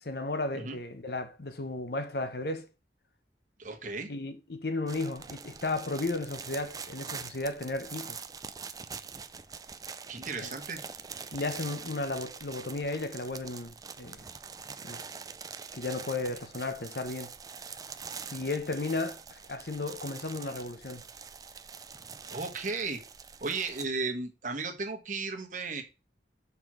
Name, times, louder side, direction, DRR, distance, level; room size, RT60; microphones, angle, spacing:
voice 1, 0.0-2.7 4.1-8.2 10.4-10.5 11.3-14.3 14.8-15.0 15.7-17.3 18.3-21.0, left 2 dB, 60° left, 1.0 m, -34 dB
voice 2, 3.6-4.1 10.1-10.8 22.3-23.0 23.4-25.8, right 4 dB, 45° right, 1.3 m, -35 dB
sound 1, 4.9-23.9, right 6 dB, 20° right, 0.4 m, -44 dB
5.6 x 4.6 x 6.0 m
head